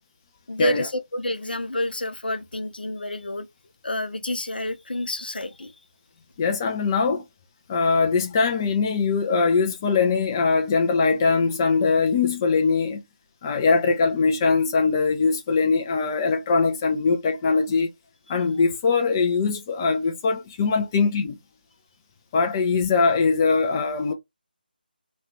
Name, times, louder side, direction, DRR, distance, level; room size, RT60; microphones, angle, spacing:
voice 1, 0.5-3.5 3.8-5.7, left 1 dB, 70° left, 0.7 m, -28 dB
voice 2, 6.4-7.2 7.7-13.0 13.4-17.9 18.3-21.4 22.3-24.1, left 4 dB, 20° left, 0.3 m, -21 dB
3.0 x 2.3 x 2.8 m
figure-of-eight pair, 155°, 5 cm